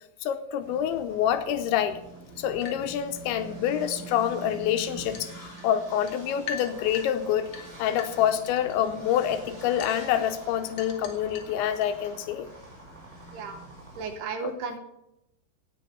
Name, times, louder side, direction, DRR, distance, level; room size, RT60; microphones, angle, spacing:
voice 1, 0.2-2.0 2.4-12.5 14.4-14.5, left 10 dB, 80° left, 8 dB, 2.9 m, -27 dB
sound 1, 0.6-14.2, right 3 dB, 20° right, 4.7 m, -46 dB
sound 2, 2.2-12.0, left 6 dB, 55° left, 2.0 m, -45 dB
sound 3, 5.9-14.1, right 2 dB, ahead, 5.6 m, -52 dB
voice 2, 14.0-14.8, right 4 dB, 75° right, 6 dB, 2.7 m, -34 dB
17.5 x 8.5 x 5.7 m, 0.85 s
omnidirectional pair, 5.5 m